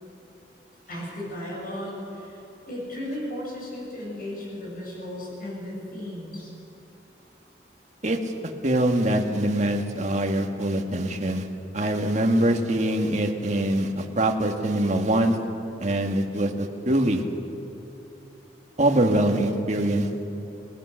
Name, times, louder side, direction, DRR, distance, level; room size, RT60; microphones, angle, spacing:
voice 1, 0.9-6.5, left 1 dB, 55° left, -4 dB, 7.2 m, -35 dB
voice 2, 8.6-11.5 11.7-15.4 15.8-17.2 18.8-20.1, right 1 dB, 40° right, 3 dB, 1.9 m, -23 dB
26.5 x 19.5 x 6.5 m, 2.9 s
head